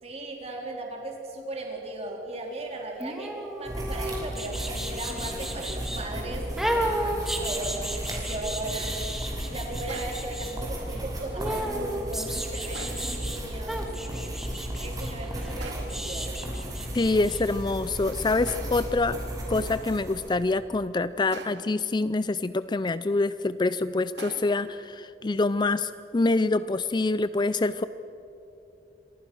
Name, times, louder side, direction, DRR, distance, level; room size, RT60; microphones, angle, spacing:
voice 1, 0.0-9.0 9.3-14.0 14.8-16.3, right 2 dB, 35° right, 1 dB, 3.9 m, -37 dB
sound 1, 3.0-6.0 6.6-10.5 11.4-13.4 13.7-17.4 17.7-17.8, right 1 dB, ahead, 2.5 m, -33 dB
sound 2, 3.7-20.3, right 1 dB, 20° right, 5.9 m, -35 dB
sound 3, 9.9-10.4 12.7-13.3 15.6-16.1 18.5-19.0 21.3-21.8 24.2-24.7, right 3 dB, 75° right, 2.8 m, -43 dB
voice 2, 16.9-19.2 19.5-27.8, left 3 dB, 25° left, 14 dB, 0.5 m, -26 dB
28.0 x 24.0 x 6.3 m, 2.9 s
head